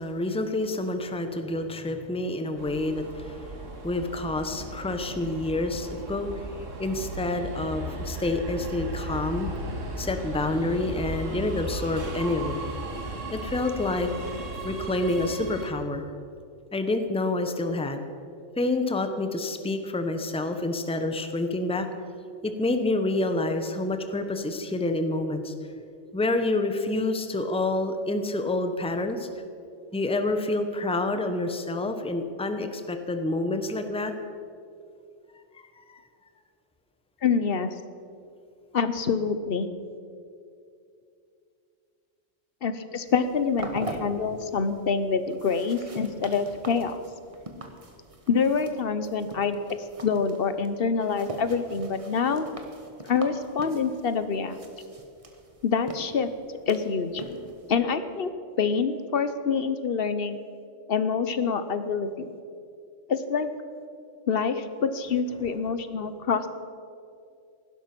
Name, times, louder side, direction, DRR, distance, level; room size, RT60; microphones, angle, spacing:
voice 1, 0.0-3.5 3.8-6.3 6.8-9.5 10.0-12.6 13.3-14.1 14.6-16.0 16.7-18.0 18.6-21.9 22.4-25.5 26.1-29.3 29.9-34.1 35.8-36.0, left 2 dB, 5° left, 7 dB, 0.8 m, -28 dB
Subway metro underground, 2.6-15.7, right 1 dB, 90° right, 2.0 m, -36 dB
voice 2, 37.2-37.7 38.7-39.7 42.6-47.0 48.3-49.6 50.0-52.5 53.1-54.6 55.6-56.3 56.7-57.2 57.7-58.3 58.6-60.4 60.9-62.3 63.1-63.5 64.3-66.5, left 5 dB, 55° left, 11 dB, 1.0 m, -26 dB
sound 1, 43.1-57.8, right 1 dB, 30° right, 1.4 m, -43 dB
16.5 x 12.0 x 6.0 m, 2.4 s
omnidirectional pair, 1.3 m